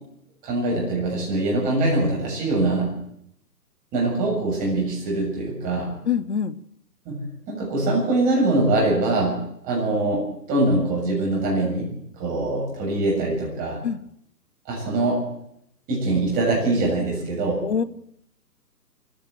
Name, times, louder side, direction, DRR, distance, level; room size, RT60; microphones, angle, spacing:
voice 1, 0.4-2.9 3.9-5.9 7.1-11.9 12.2-13.8 14.7-15.2 15.9-17.6, right 2 dB, 15° right, -2 dB, 7.3 m, -23 dB
voice 2, 6.1-6.6 13.8-14.0 17.6-17.8, left 7 dB, 40° left, 16 dB, 0.9 m, -24 dB
23.0 x 16.0 x 7.8 m, 0.73 s
figure-of-eight pair, 135°, 49 cm